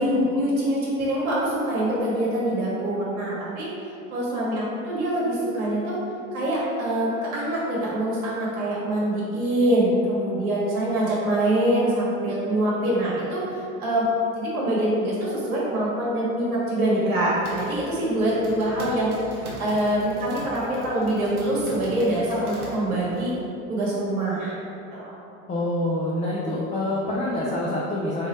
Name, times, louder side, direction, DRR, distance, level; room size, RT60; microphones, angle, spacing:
voice 1, 0.0-3.7 4.1-6.0 6.3-14.1 14.3-23.3 23.7-24.6 24.9-25.2, right 1 dB, 75° right, -6 dB, 1.4 m, -24 dB
sound 1, 17.1-23.3, equal, 90° right, 0.8 m, -42 dB
voice 2, 25.5-28.3, left 1 dB, 15° left, -5 dB, 0.5 m, -26 dB
3.6 x 3.0 x 4.2 m, 2.7 s
figure-of-eight pair, 70°, 43 cm